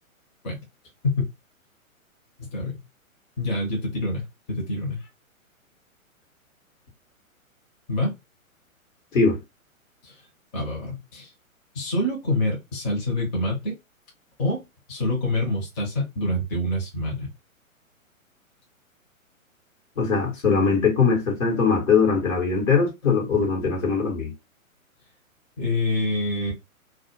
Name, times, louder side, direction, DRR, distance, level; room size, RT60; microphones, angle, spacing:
voice 1, 2.4-2.8 3.4-5.1 7.9-8.1 10.0-10.2 10.5-11.3 11.7-13.7 14.4-17.3 25.6-26.5, left 1 dB, 30° left, 0.9 m, -26 dB
voice 2, 20.0-24.3, left 5 dB, 65° left, 1.2 m, -21 dB
2.3 x 2.2 x 2.8 m
figure-of-eight pair, 120°, 42 cm